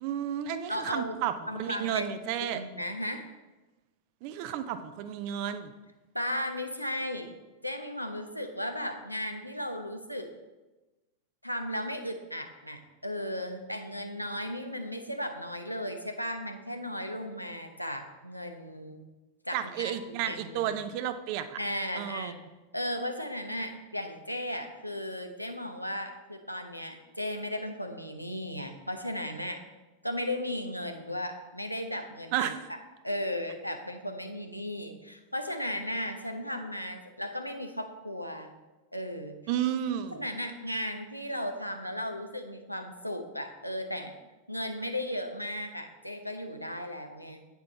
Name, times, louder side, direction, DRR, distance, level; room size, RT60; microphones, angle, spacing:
voice 1, 0.0-2.6 4.2-5.7 19.5-21.6 21.9-22.3 32.3-32.6 39.5-40.3, right 10 dB, 45° right, 10 dB, 0.6 m, -32 dB
voice 2, 0.7-1.2 1.5-2.1 2.5-3.2 6.1-7.3 7.6-10.3 11.4-19.1 19.4-19.9 20.2-20.7 21.6-22.4 22.7-29.6 30.0-32.5 33.0-38.5 38.9-39.4 40.1-44.1 44.5-47.4, left 1 dB, 90° left, 5 dB, 0.9 m, -35 dB
8.9 x 7.0 x 4.1 m, 1.1 s
figure-of-eight pair, 90°, 0 cm